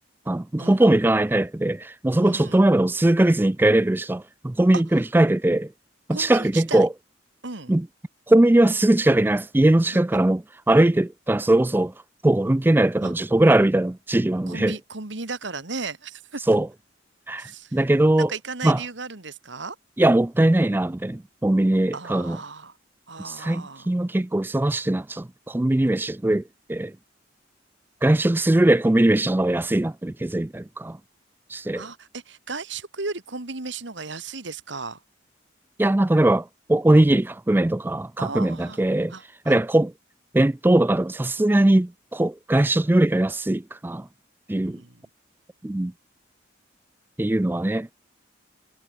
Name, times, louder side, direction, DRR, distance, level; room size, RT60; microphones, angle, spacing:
voice 1, 0.3-5.7 6.1-6.9 7.7-7.9 8.3-11.9 12.2-14.8 16.5-16.7 17.3-18.3 18.6-18.8 20.0-22.4 23.2-26.4 26.7-26.9 28.0-31.0 31.5-31.9 35.8-39.1 39.5-39.9 40.3-44.1 44.5-44.8 45.6-45.9 47.2-47.9, right 1 dB, 10° right, 0.3 m, -20 dB
voice 2, 2.1-2.6 6.1-6.9 7.4-7.7 13.0-13.1 14.5-16.4 17.4-17.8 18.2-19.8 21.9-22.7 23.1-23.9 31.8-35.0 38.2-38.8 39.1-39.6 44.6-44.9, right 4 dB, 70° right, 2.1 m, -35 dB
head